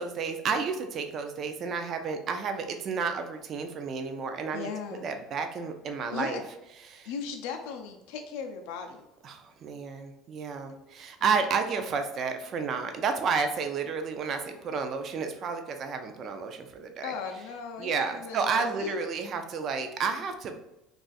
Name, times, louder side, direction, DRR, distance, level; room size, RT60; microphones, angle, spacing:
voice 1, 0.0-4.7 5.0-6.4 6.9-7.1 9.2-17.1 17.8-20.5, right 5 dB, 35° right, 6 dB, 0.3 m, -31 dB
voice 2, 4.5-5.1 6.1-6.4 7.0-9.1 17.0-19.0, left 6 dB, 75° left, 3 dB, 0.3 m, -37 dB
2.4 x 2.4 x 3.9 m, 0.88 s
cardioid pair, 160°, 0 cm